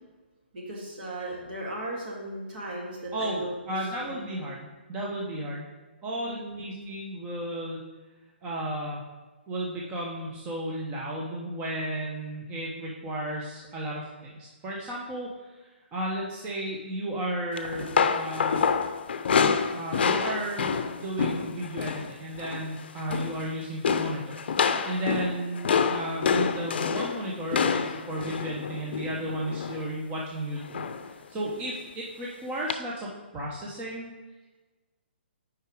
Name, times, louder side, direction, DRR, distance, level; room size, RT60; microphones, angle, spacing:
voice 1, 0.5-4.1 4.4-4.5 6.2-6.8, right 1 dB, 55° right, -2 dB, 2.1 m, -37 dB
voice 2, 3.1-5.7 6.0-7.8 8.4-9.0 9.5-18.7 19.7-34.1, right 1 dB, 20° right, -3 dB, 0.9 m, -34 dB
sound 1, 17.6-22.1 22.4-22.7 23.0-23.5 23.8-29.9 30.7-31.1 31.4-31.6 32.7-32.8, left 6 dB, 60° left, 0.5 m, -27 dB
6.5 x 4.9 x 4.8 m, 1.2 s
hypercardioid pair, 140°, 6 cm